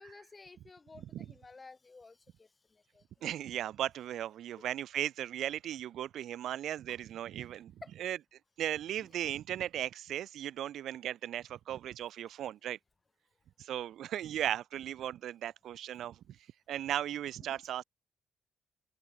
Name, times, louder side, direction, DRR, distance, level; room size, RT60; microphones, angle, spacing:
voice 1, 0.0-3.0 6.9-7.0 7.8-7.9 9.0-9.3 17.5-17.6, left 3 dB, 25° left, 3.9 m, -54 dB
voice 2, 3.2-7.7 8.0-8.2 8.6-12.8 13.6-16.2 16.7-17.8, right 11 dB, 75° right, 0.5 m, -36 dB
open air
cardioid pair, 90°, 0 cm